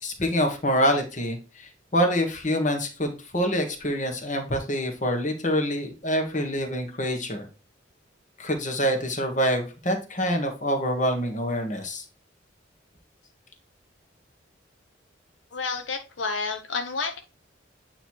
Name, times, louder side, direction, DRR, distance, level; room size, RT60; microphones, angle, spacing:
voice 1, 0.0-7.5 8.4-12.0, equal, 40° left, 3 dB, 1.4 m, -26 dB
voice 2, 15.5-17.2, left 4 dB, 80° left, 4 dB, 0.7 m, -30 dB
8.9 x 3.0 x 4.5 m, 0.31 s
head